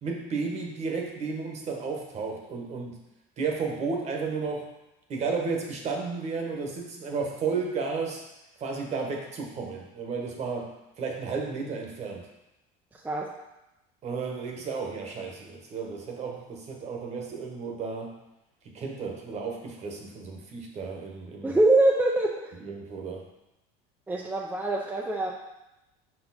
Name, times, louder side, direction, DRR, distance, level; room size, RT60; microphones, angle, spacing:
voice 1, 0.0-3.0 3.4-4.7 5.1-8.2 8.6-12.3 14.0-18.1 18.6-21.6 22.6-23.3, right 4 dB, 35° right, 1 dB, 1.2 m, -33 dB
voice 2, 21.4-22.4 24.1-25.3, right 2 dB, 10° right, -2 dB, 0.5 m, -23 dB
5.4 x 4.4 x 4.2 m, 0.92 s
supercardioid pair, 130°, 19 cm